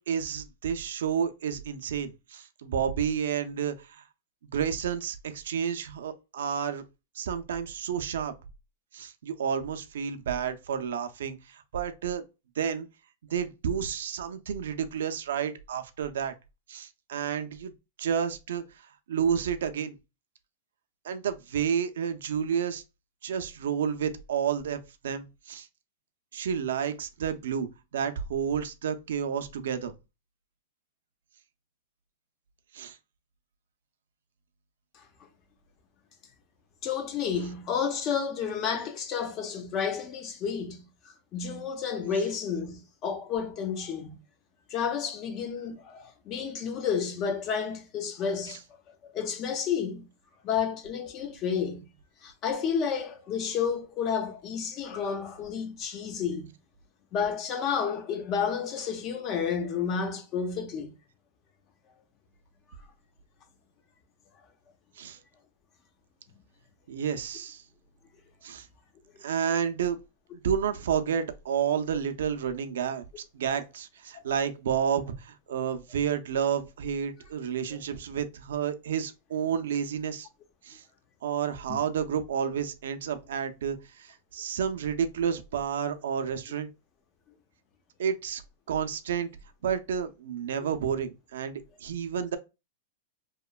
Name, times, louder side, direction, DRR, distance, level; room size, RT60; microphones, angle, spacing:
voice 1, 0.0-4.0 4.5-6.8 7.2-8.3 8.9-12.2 12.6-12.9 13.3-16.3 16.7-17.7 18.0-18.6 19.1-20.0 21.0-22.8 23.2-25.7 26.3-27.7 27.9-29.9 32.7-33.0 48.5-48.6 65.0-65.2 66.9-67.6 68.4-68.7 69.2-70.0 70.4-80.3 80.6-80.8 81.2-86.7 88.0-88.4 88.7-89.3 89.6-92.4, right 8 dB, 85° right, 0.4 m, -30 dB
voice 2, 36.8-44.2 44.7-48.6 49.0-50.1 50.4-51.8 52.2-56.5 57.1-60.9 79.6-79.7 81.7-81.8, left 7 dB, 30° left, 0.5 m, -31 dB
2.9 x 2.1 x 2.3 m
supercardioid pair, 155°, 0 cm